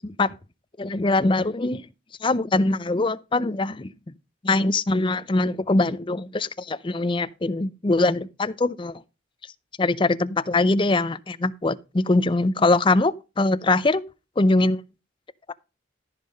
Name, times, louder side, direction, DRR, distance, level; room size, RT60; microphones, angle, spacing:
voice 1, 0.0-0.3 0.8-1.8 2.2-3.9 4.4-9.0 9.8-14.0 14.4-14.8, left 2 dB, 25° left, 0.5 m, -22 dB
13.5 x 5.6 x 5.2 m
head